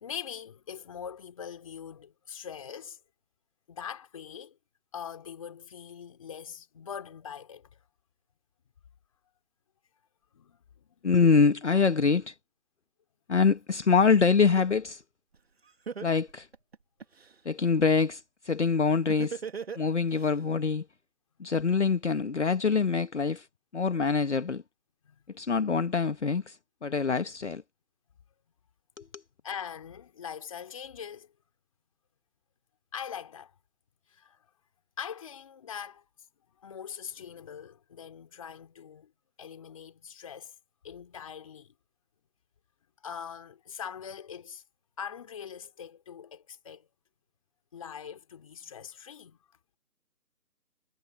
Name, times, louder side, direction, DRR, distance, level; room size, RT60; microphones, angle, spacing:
voice 1, 0.0-3.0 3.7-4.6 4.9-7.7 10.3-11.1 25.0-25.2 29.4-31.3 32.9-33.5 34.1-34.4 35.0-36.0 36.6-39.1 39.4-40.5 40.8-41.7 43.0-44.6 45.0-46.9 47.7-49.4, left 8 dB, 20° left, 3.2 m, -42 dB
voice 2, 11.0-12.4 13.3-15.0 16.0-16.5 17.4-19.4 19.7-20.8 21.4-23.5 23.7-24.6 25.3-27.6 29.0-29.2, left 5 dB, 50° left, 1.2 m, -25 dB
Laughter, 15.3-15.4 15.9-17.3 19.1-20.3, right 6 dB, 40° right, 2.2 m, -37 dB
figure-of-eight pair, 170°, 45 cm